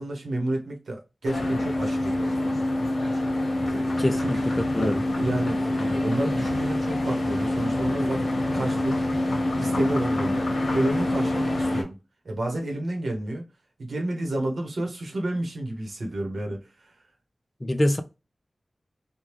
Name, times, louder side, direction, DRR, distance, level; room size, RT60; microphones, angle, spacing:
voice 1, 0.0-2.3 3.6-4.4 4.8-9.2 9.6-10.5 10.7-12.0 12.2-13.4 13.8-16.9, right 1 dB, 85° right, 1.1 m, -31 dB
sound 1, 1.2-11.8, left 1 dB, 75° left, 1.1 m, -26 dB
voice 2, 4.0-5.0 17.6-18.0, left 1 dB, 20° left, 0.4 m, -25 dB
3.5 x 2.3 x 3.0 m
wide cardioid pair, 100°, 0 cm